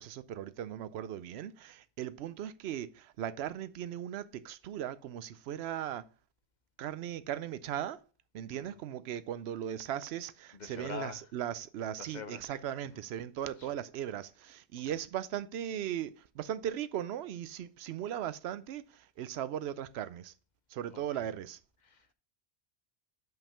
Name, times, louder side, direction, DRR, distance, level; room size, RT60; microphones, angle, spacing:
voice 1, 0.0-6.1 6.8-8.0 8.3-20.3 20.7-21.6, right 10 dB, 75° right, 0.8 m, -38 dB
voice 2, 10.5-11.3 12.0-12.6 12.9-13.0 13.6-13.8 14.9-15.0 20.9-21.3 21.8-22.1, left 6 dB, 45° left, 0.8 m, -46 dB
5.9 x 5.3 x 5.5 m
omnidirectional pair, 1.1 m